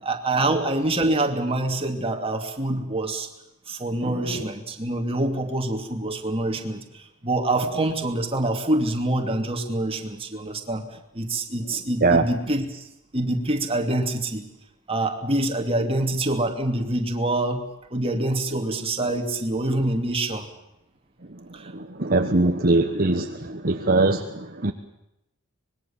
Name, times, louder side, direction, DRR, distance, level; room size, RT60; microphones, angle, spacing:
voice 1, 0.0-3.3 3.7-10.8 11.1-12.9 13.1-14.4 14.9-17.6 17.9-20.5 21.5-21.7, right 2 dB, 25° right, 4 dB, 2.6 m, -25 dB
voice 2, 4.0-4.4 12.0-12.3 21.7-24.7, right 2 dB, 40° right, 5 dB, 1.2 m, -22 dB
25.0 x 21.0 x 7.3 m, 0.87 s
head